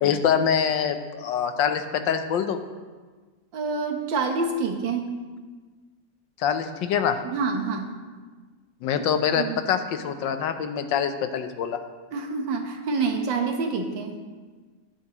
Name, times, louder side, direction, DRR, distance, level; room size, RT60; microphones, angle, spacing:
voice 1, 0.0-2.6 6.4-7.2 8.8-11.8, left 8 dB, 80° left, 8 dB, 1.5 m, -25 dB
voice 2, 3.5-5.1 7.2-7.9 9.4-9.6 12.1-14.2, right 4 dB, 80° right, 4 dB, 1.8 m, -27 dB
21.0 x 7.3 x 3.0 m, 1.4 s
omnidirectional pair, 2.0 m